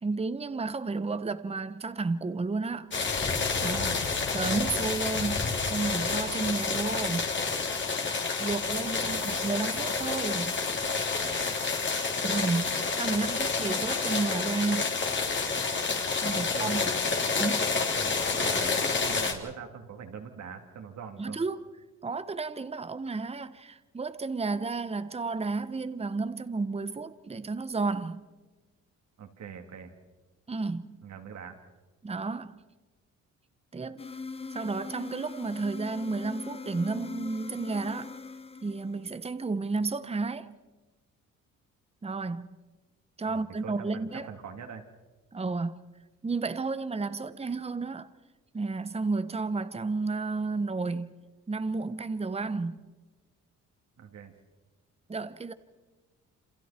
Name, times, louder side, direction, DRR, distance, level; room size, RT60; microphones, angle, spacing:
voice 1, 0.0-2.9 3.6-3.8 4.3-7.2 8.4-10.6 12.2-15.0 16.2-16.8 17.4-17.8 21.2-21.7 22.0-28.3 30.5-31.0 32.0-32.6 33.7-34.0 34.5-38.1 38.6-40.5 42.0-42.5 43.2-44.3 45.3-45.8 46.2-48.1 48.5-51.1 51.5-52.9 55.1-55.5, right 3 dB, 20° right, 1.1 m, -32 dB
sound 1, 2.9-19.3, left 4 dB, 40° left, 3.2 m, -29 dB
voice 2, 3.6-4.0 8.9-9.4 11.1-11.6 13.3-13.4 16.3-16.9 17.9-21.4 29.2-29.9 31.0-31.6 43.3-44.8 54.0-54.3, right 6 dB, 65° right, 3.4 m, -43 dB
sound 2, 34.0-39.3, left 4 dB, 20° left, 1.1 m, -41 dB
28.0 x 27.5 x 4.5 m
cardioid pair, 90°, 30 cm